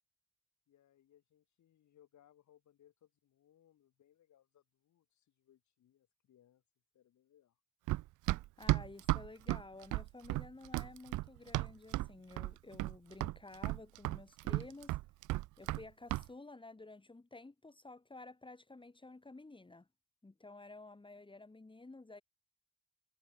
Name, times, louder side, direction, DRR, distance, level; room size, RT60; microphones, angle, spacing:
voice 1, 0.7-6.6 6.9-7.6, left 11 dB, 70° left, 4.9 m, -68 dB
Run, 7.9-12.1 12.4-13.0 13.2-15.8 16.1-16.3, right 18 dB, 80° right, 0.5 m, -34 dB
voice 2, 8.6-15.0 15.6-19.9 20.2-22.2, left 2 dB, 15° left, 3.2 m, -52 dB
cardioid pair, 90°, 30 cm